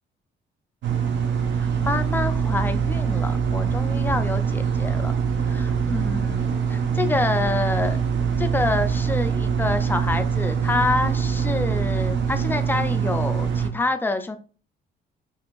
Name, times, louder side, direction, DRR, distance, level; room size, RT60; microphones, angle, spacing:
sound 1, 0.8-13.7, right 6 dB, 65° right, 0.6 m, -24 dB
voice 1, 1.6-5.1 5.5-8.0 8.4-14.4, left 2 dB, 10° left, 8 dB, 0.3 m, -27 dB
2.6 x 2.4 x 2.9 m, 0.38 s
cardioid pair, 90°, 20 cm